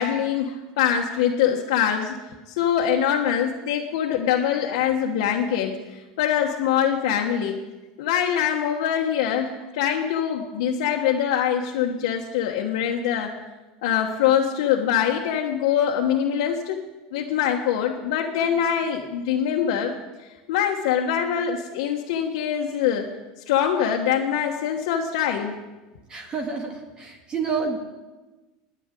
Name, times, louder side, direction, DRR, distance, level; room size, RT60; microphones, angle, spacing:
voice 1, 0.0-2.2 2.5-7.6 8.0-13.3 13.8-16.8 17.1-19.9 20.2-23.1 23.5-25.5, left 9 dB, 80° left, -1 dB, 1.3 m, -23 dB
voice 2, 26.1-27.8, right 5 dB, 30° right, 2 dB, 1.8 m, -29 dB
10.5 x 9.8 x 9.0 m, 1.2 s
supercardioid pair, 130°, 3 cm